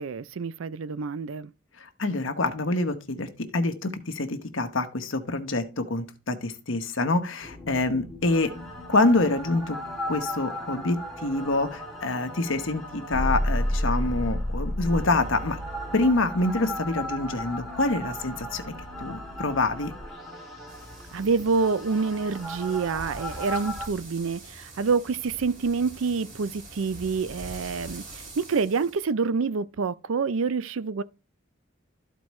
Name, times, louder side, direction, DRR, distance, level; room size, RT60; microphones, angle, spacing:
voice 1, 0.0-1.5 21.1-31.0, right 4 dB, 80° right, 0.5 m, -27 dB
voice 2, 1.8-8.5 8.9-9.8 10.1-15.6 15.9-18.7 19.0-19.9, left 2 dB, 70° left, 1.2 m, -26 dB
sound 1, 7.4-23.9, equal, ahead, 1.9 m, -33 dB
sound 2, 20.7-29.1, right 2 dB, 35° right, 2.8 m, -44 dB
13.5 x 4.6 x 3.1 m
head